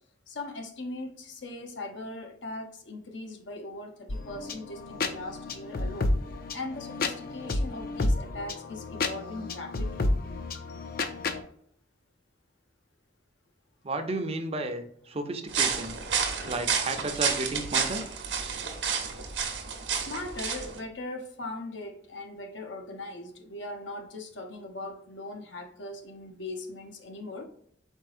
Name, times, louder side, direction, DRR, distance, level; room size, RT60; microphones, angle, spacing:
voice 1, 0.3-6.1 6.5-10.1 19.9-27.5, left 2 dB, 90° left, 3 dB, 0.9 m, -39 dB
sound 1, 4.1-11.4, left 2 dB, 55° left, 0.5 m, -31 dB
voice 2, 13.8-15.9 16.5-18.0, right 2 dB, 35° right, 6 dB, 0.6 m, -32 dB
sound 2, 15.5-20.8, right 6 dB, 70° right, 0.9 m, -30 dB
4.5 x 4.0 x 2.5 m, 0.66 s
head